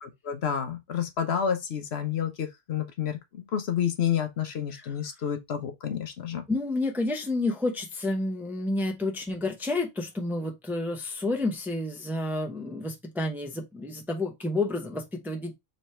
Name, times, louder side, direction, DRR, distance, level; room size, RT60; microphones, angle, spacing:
voice 1, 0.0-6.4, left 8 dB, 65° left, 1.0 m, -30 dB
voice 2, 6.5-15.6, left 2 dB, ahead, 0.6 m, -30 dB
3.3 x 3.2 x 4.2 m
omnidirectional pair, 1.2 m